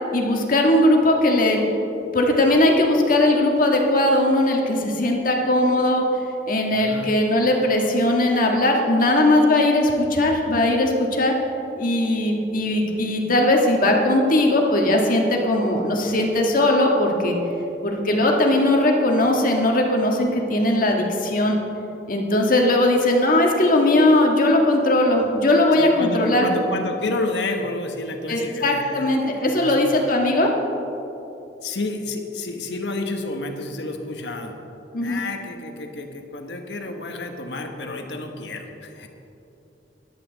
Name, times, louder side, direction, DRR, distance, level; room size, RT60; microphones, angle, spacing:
voice 1, 0.1-1.6 2.1-6.0 6.5-11.3 11.8-17.4 17.8-21.6 22.1-26.5 28.3-30.5 34.9-35.2, left 1 dB, 50° left, 1 dB, 1.6 m, -19 dB
voice 2, 6.7-7.1 25.8-30.0 31.6-34.5 35.0-39.1, left 2 dB, 75° left, 4 dB, 1.2 m, -30 dB
14.0 x 11.0 x 4.0 m, 2.9 s
head